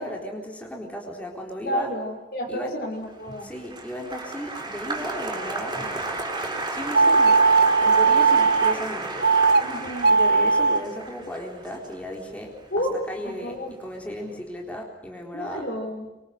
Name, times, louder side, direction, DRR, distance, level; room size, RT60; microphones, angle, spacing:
voice 1, 0.0-1.9 2.5-2.8 3.4-6.1 6.7-9.4 10.1-15.7, equal, 10° left, 0 dB, 4.0 m, -35 dB
voice 2, 1.6-3.5 9.6-10.1 12.7-13.7 15.3-16.1, equal, 65° left, 3 dB, 5.8 m, -31 dB
Applause, 3.1-13.5 13.8-14.4, right 2 dB, 25° right, 5.7 m, -33 dB
sound 1, 6.9-8.8 9.2-9.6 10.0-10.8, right 4 dB, 60° right, 0.9 m, -18 dB
26.5 x 24.0 x 6.7 m, 1.0 s
head